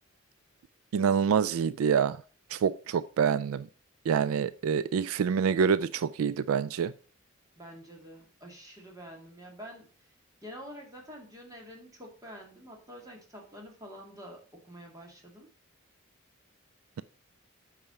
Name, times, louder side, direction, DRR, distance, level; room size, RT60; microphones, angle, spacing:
voice 1, 0.9-2.2 2.5-3.7 4.1-6.9, right 7 dB, 75° right, 16 dB, 0.3 m, -26 dB
voice 2, 7.6-9.9 10.4-15.5, equal, 15° right, 0 dB, 2.2 m, -47 dB
8.7 x 5.0 x 5.5 m, 0.40 s
head